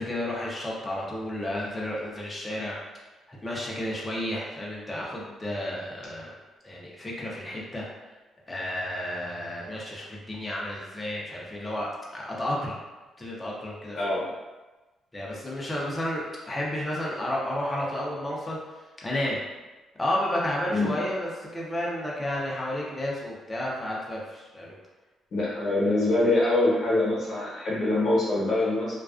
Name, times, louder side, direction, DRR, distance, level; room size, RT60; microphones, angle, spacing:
voice 1, 0.0-2.8 3.3-6.4 6.6-7.9 8.5-11.9 12.1-12.8 13.2-14.0 15.1-19.4 20.0-24.8, left 1 dB, 20° left, -4 dB, 0.6 m, -32 dB
voice 2, 25.3-29.0, left 2 dB, 55° left, -6 dB, 1.0 m, -24 dB
2.3 x 2.3 x 2.4 m, 1.2 s
cardioid pair, 90°, 0 cm